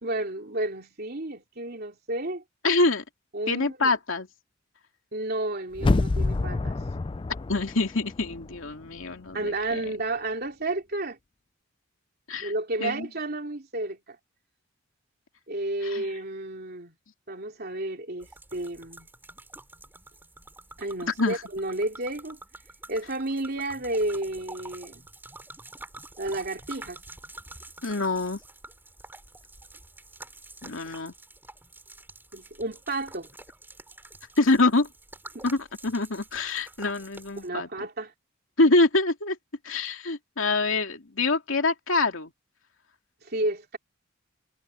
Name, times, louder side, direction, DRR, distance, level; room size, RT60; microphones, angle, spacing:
voice 1, 0.0-2.4 3.3-3.9 5.1-6.8 9.3-11.2 12.4-14.2 15.5-16.9 17.3-19.1 20.8-22.4 22.9-25.1 26.2-27.0 32.3-33.3 35.3-35.4 37.4-38.1 43.2-43.8, right 2 dB, 50° right, 3.2 m, -31 dB
voice 2, 2.6-3.0 3.5-4.3 7.5-9.8 12.3-12.5 12.8-13.1 15.8-16.0 21.2-21.4 27.8-28.4 30.6-31.1 34.4-34.9 35.4-37.9 38.6-39.4 39.6-42.3, left 3 dB, 75° left, 2.6 m, -25 dB
sound 1, 5.8-8.7 9.0-9.1, left 2 dB, 25° left, 0.4 m, -27 dB
sound 2, 18.2-37.5, right 2 dB, 10° right, 7.1 m, -47 dB
head